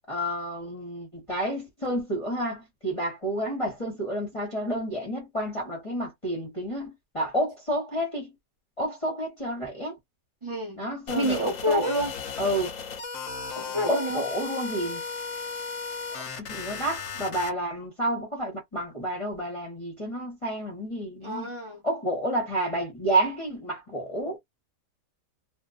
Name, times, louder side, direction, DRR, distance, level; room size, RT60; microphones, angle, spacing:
voice 1, 0.1-8.3 8.8-10.0 10.8-11.8 12.4-12.7 13.9-15.0 16.1-21.5 21.8-24.4, right 1 dB, 25° left, 1.0 m, -30 dB
voice 2, 10.4-10.8 11.1-12.1 13.5-14.2 21.2-21.9, equal, 25° right, 0.8 m, -28 dB
sound 1, 11.1-17.5, left 5 dB, 60° left, 1.0 m, -35 dB
2.7 x 2.5 x 2.4 m
omnidirectional pair, 1.8 m